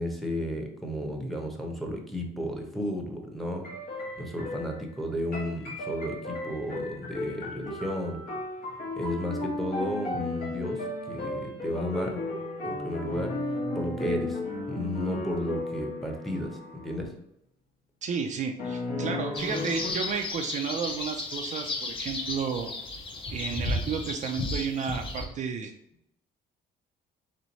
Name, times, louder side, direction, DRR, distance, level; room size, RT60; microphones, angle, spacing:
voice 1, 0.0-3.7 4.2-8.2 9.0-12.2 12.6-13.3 13.7-14.4 14.7-17.1, equal, ahead, 2 dB, 0.8 m, -33 dB
sound 1, 3.6-4.8 5.3-17.0 18.6-19.9, left 2 dB, 60° left, 1.2 m, -34 dB
voice 2, 18.0-22.7 23.3-25.7, right 6 dB, 45° right, 4 dB, 0.4 m, -32 dB
sound 2, 19.3-25.3, left 2 dB, 30° left, 0.7 m, -34 dB
3.3 x 3.1 x 4.0 m, 0.77 s
cardioid pair, 110°, 17 cm